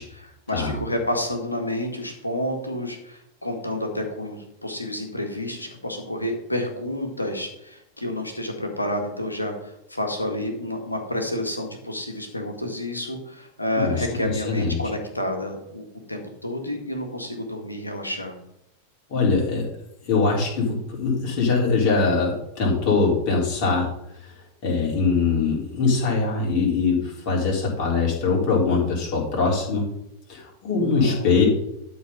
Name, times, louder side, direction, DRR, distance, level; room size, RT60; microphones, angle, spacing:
voice 1, 0.0-18.4 30.7-31.3, left 1 dB, 85° left, 4 dB, 1.8 m, -30 dB
voice 2, 14.3-14.8 19.1-19.7 20.1-23.9 24.2-24.3 24.6-29.9 30.3-31.5, left 4 dB, 40° left, -2 dB, 3.7 m, -22 dB
12.0 x 4.1 x 5.5 m, 0.81 s
figure-of-eight pair, 90°, 0 cm